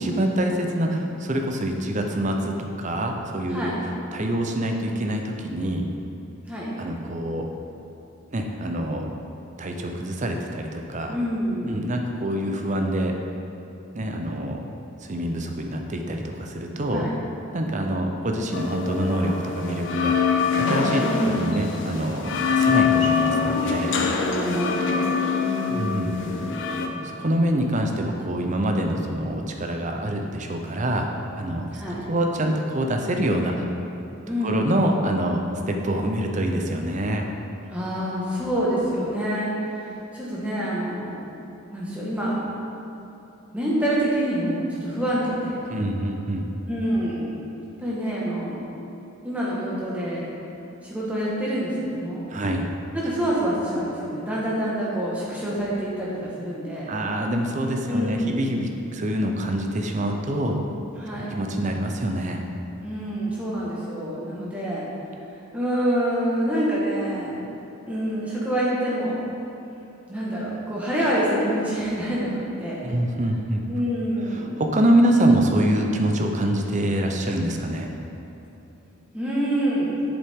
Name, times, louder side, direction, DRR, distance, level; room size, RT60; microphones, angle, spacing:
voice 1, 0.0-3.7 4.1-5.9 6.8-7.5 8.3-9.1 9.6-11.1 11.6-13.2 13.9-14.6 15.0-17.1 17.5-24.0 25.7-26.1 27.0-31.1 31.4-33.7 34.4-37.3 45.7-46.5 52.3-52.7 56.9-60.6 61.3-62.4 72.8-73.6 74.3-77.9, right 1 dB, 35° right, 3 dB, 0.6 m, -25 dB
voice 2, 11.1-11.9 16.9-17.1 21.0-21.6 24.2-26.9 31.8-32.0 34.3-34.7 37.7-41.2 41.7-42.4 43.5-45.7 46.7-47.2 47.8-48.6 49.2-50.3 50.8-52.3 52.9-56.9 57.9-58.4 61.0-61.3 62.8-64.8 65.5-67.5 67.9-69.2 70.1-72.3 72.6-72.8 73.7-74.6 79.1-79.9, equal, 5° right, -7 dB, 1.5 m, -27 dB
sound 1, 18.5-26.9, left 5 dB, 55° left, 0.6 m, -24 dB
8.0 x 7.2 x 3.6 m, 3.0 s
head